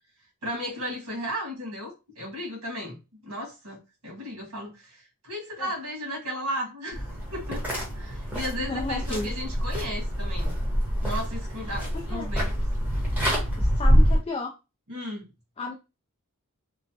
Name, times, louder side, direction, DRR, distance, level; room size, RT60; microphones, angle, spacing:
voice 1, 0.4-7.6 7.9-10.6 11.0-12.5 14.9-15.3, equal, 85° right, 0 dB, 1.4 m, -35 dB
sound 1, 6.9-14.2, equal, 10° right, 1.0 m, -25 dB
voice 2, 8.5-9.3 12.1-12.3 13.5-14.5 15.6-15.7, left 3 dB, 25° left, 1 dB, 0.3 m, -33 dB
3.0 x 2.1 x 2.7 m, 0.27 s
head